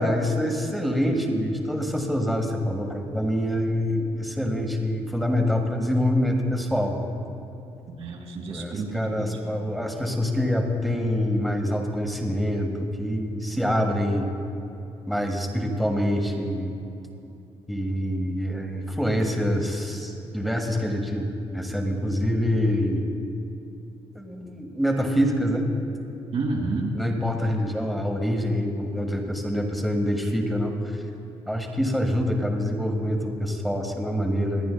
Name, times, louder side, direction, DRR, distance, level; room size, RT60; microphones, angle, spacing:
voice 1, 0.0-7.0 8.5-14.3 15.1-16.7 17.7-23.1 24.1-25.7 26.9-30.8 31.5-34.7, equal, ahead, 2 dB, 1.6 m, -25 dB
voice 2, 8.0-9.6 26.3-27.0, right 2 dB, 70° right, 0 dB, 2.2 m, -30 dB
25.0 x 10.0 x 2.3 m, 2.8 s
cardioid pair, 85°, 11 cm